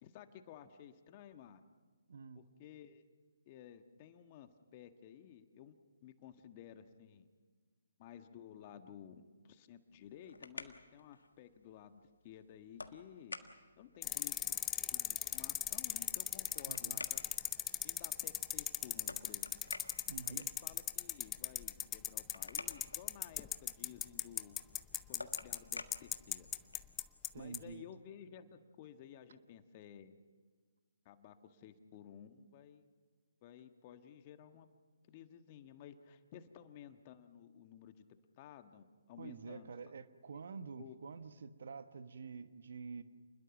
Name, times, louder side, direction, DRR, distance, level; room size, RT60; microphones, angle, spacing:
voice 1, 0.0-1.6 2.3-3.0 3.5-7.3 8.0-13.4 13.8-14.5 14.9-17.2 17.8-19.6 20.3-24.6 25.1-26.5 27.4-30.1 31.0-32.9 33.4-34.7 35.1-38.1 38.4-39.7 40.8-41.0, left 9 dB, 35° left, 8 dB, 1.5 m, -55 dB
voice 2, 2.1-2.4 16.7-17.0 20.1-20.5 27.3-27.8 39.2-43.0, right 5 dB, 60° right, 11 dB, 1.3 m, -48 dB
sound 1, 9.9-27.0, left 3 dB, 80° left, 1.6 m, -53 dB
sound 2, 14.0-27.3 27.5-27.6, left 11 dB, 15° left, 0.7 m, -37 dB
29.0 x 21.0 x 6.1 m, 1.5 s
figure-of-eight pair, 140°, 0 cm